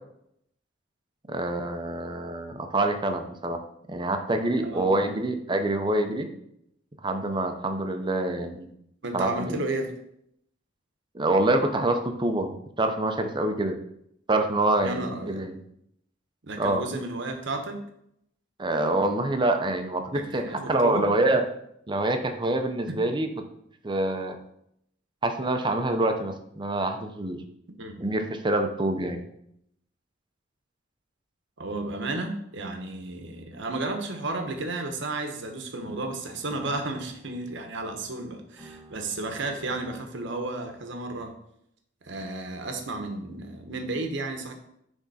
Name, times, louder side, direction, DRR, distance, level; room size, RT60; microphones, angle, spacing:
voice 1, 1.3-3.6 3.9-6.3 7.0-8.7 9.1-9.6 11.1-13.8 14.3-15.6 16.6-16.8 18.6-21.4 21.9-23.3 23.8-24.4 25.2-27.4 28.0-29.2, right 2 dB, 25° right, 6 dB, 0.7 m, -26 dB
voice 2, 4.6-4.9 9.0-9.9 14.8-15.4 16.4-17.8 20.1-21.1 22.9-23.0 27.8-27.9 31.6-41.3 42.0-44.5, right 2 dB, 65° right, 5 dB, 1.1 m, -33 dB
sound 1, 35.8-38.2 38.6-40.8, right 1 dB, 5° right, 1.0 m, -51 dB
10.0 x 3.6 x 4.2 m, 0.74 s
head